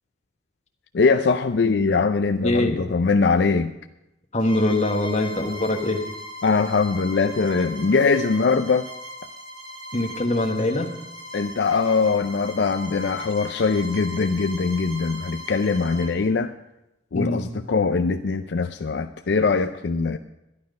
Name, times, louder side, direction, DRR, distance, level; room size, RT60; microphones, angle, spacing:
voice 1, 0.9-3.7 6.4-8.9 11.3-16.5 17.1-20.2, left 4 dB, 75° left, 7 dB, 0.5 m, -22 dB
voice 2, 2.4-2.8 4.3-6.0 9.9-10.9 17.1-17.4, left 1 dB, 40° left, 2 dB, 1.4 m, -23 dB
Bowed string instrument, 4.4-16.2, equal, 25° right, 2.2 m, -38 dB
11.5 x 11.5 x 5.2 m, 0.91 s
head